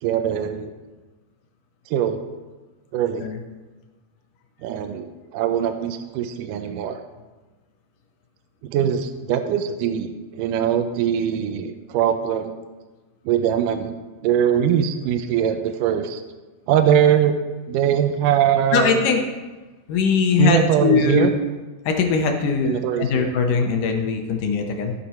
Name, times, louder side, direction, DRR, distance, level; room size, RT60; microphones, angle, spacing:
voice 1, 0.0-0.7 1.9-2.2 2.9-3.3 4.6-7.0 8.6-12.6 13.3-14.0 14.2-16.2 16.7-17.4 17.7-19.0 20.4-21.3 22.6-23.3, right 9 dB, 80° right, 7 dB, 2.1 m, -21 dB
voice 2, 18.7-19.2 19.9-21.3 21.9-24.9, left 5 dB, 70° left, 4 dB, 2.3 m, -20 dB
15.0 x 6.9 x 4.3 m, 1.2 s
omnidirectional pair, 4.2 m